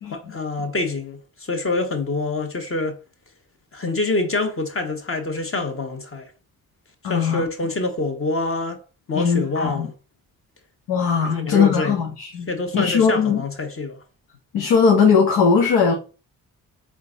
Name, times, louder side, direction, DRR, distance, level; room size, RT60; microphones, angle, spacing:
voice 1, 0.1-1.2 1.5-3.0 3.7-6.3 7.0-8.8 9.1-9.9 11.3-11.9 12.5-14.0, left 2 dB, 35° left, 1.4 m, -26 dB
voice 2, 7.0-7.4 9.1-9.9 10.9-12.5 12.7-13.4 14.5-15.9, left 6 dB, 80° left, 1.0 m, -19 dB
3.7 x 3.6 x 3.8 m
supercardioid pair, 50°, 37 cm